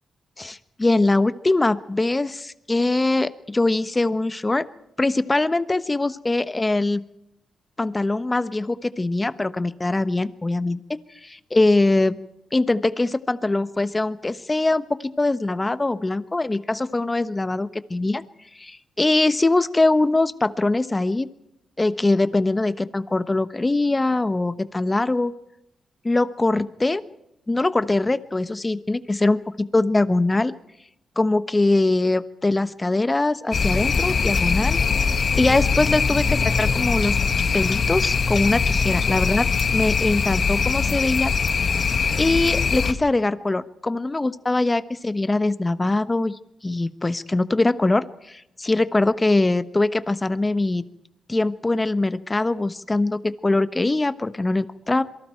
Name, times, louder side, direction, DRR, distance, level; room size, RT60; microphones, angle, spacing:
voice 1, 0.4-4.7 5.0-7.0 7.8-10.8 11.2-12.2 12.5-18.2 18.6-21.3 21.8-25.3 26.0-27.0 27.5-30.5 31.2-34.8 35.4-37.2 37.5-41.3 42.2-50.8 51.3-55.0, left 2 dB, 20° left, 12 dB, 1.1 m, -22 dB
sound 1, 33.5-42.9, left 5 dB, 55° left, 1.3 m, -22 dB
27.0 x 23.0 x 4.5 m, 0.82 s
cardioid pair, 85°, 0 cm